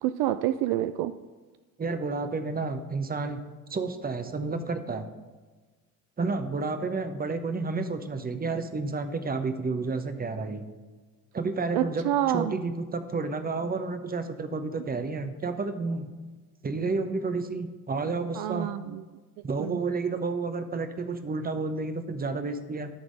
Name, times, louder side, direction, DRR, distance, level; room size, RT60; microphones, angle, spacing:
voice 1, 0.0-1.1 11.7-12.6 18.3-19.0 19.6-19.8, right 13 dB, 65° right, 11 dB, 0.5 m, -28 dB
voice 2, 1.8-3.4 3.7-5.1 6.2-10.7 11.3-12.0 12.3-16.1 16.6-18.7 19.4-22.9, right 3 dB, 20° right, 8 dB, 0.9 m, -30 dB
11.5 x 3.9 x 6.4 m, 1.3 s
hypercardioid pair, 55°, 43 cm